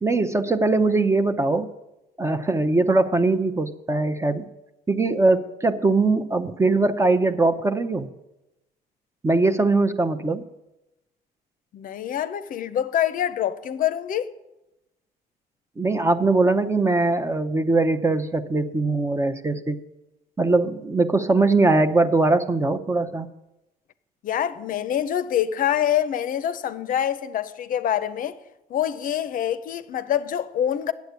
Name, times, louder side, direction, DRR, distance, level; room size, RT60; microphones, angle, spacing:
voice 1, 0.0-1.7 2.2-4.5 4.9-8.1 9.2-10.4 15.8-19.8 20.4-23.3, right 3 dB, 15° right, 0.7 m, -21 dB
voice 2, 11.7-14.3 24.2-28.3 28.7-30.9, left 10 dB, 55° left, 0.6 m, -25 dB
9.3 x 8.2 x 8.1 m
cardioid pair, 110°, 17 cm